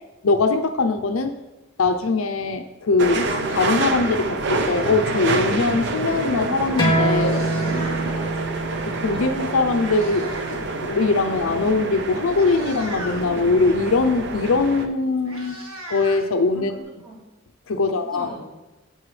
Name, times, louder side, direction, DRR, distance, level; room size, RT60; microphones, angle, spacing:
voice 1, 0.2-1.4 1.8-7.4 8.9-15.6 15.9-16.7 17.7-18.3, left 3 dB, 80° left, 7 dB, 0.6 m, -21 dB
sound 1, 3.0-14.9, right 3 dB, 55° right, 0.7 m, -27 dB
sound 2, 6.8-12.0, right 2 dB, 25° left, 2.5 m, -27 dB
Meow, 7.1-8.2 9.3-10.6 10.9-11.2 11.9-12.0 12.3-13.3 14.6-14.7 14.9-16.8, right 1 dB, 85° right, 1.5 m, -38 dB
voice 2, 7.6-8.5 9.1-9.2 16.5-17.2 17.8-18.5, right 1 dB, 5° left, -9 dB, 3.6 m, -38 dB
11.0 x 8.1 x 3.3 m, 1.0 s
head